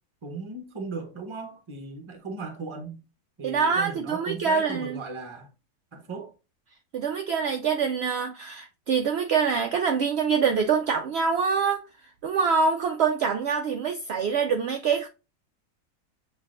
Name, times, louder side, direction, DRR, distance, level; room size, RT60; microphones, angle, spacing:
voice 1, 0.2-3.0 3.4-5.5 5.9-6.3, right 4 dB, 25° right, 0.6 m, -37 dB
voice 2, 3.4-5.0 6.9-11.8 12.2-15.1, right 6 dB, 75° right, 0.6 m, -25 dB
7.6 x 2.6 x 2.4 m
omnidirectional pair, 1.6 m